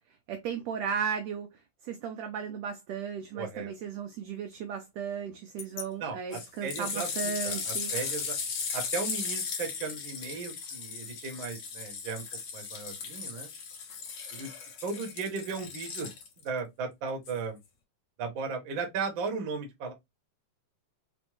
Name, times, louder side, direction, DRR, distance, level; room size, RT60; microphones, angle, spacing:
voice 1, 0.3-7.9, right 7 dB, 80° right, 1.5 m, -35 dB
voice 2, 3.3-3.7 6.0-8.3 8.7-12.2 12.5-13.5 14.3-14.5 14.8-16.1 16.4-17.6 18.2-19.9, right 5 dB, 65° right, 1.2 m, -36 dB
sound 1, 5.6-5.8 6.3-16.5 17.3-17.4, left 5 dB, 60° left, 1.6 m, -37 dB
5.1 x 2.1 x 3.0 m
omnidirectional pair, 3.7 m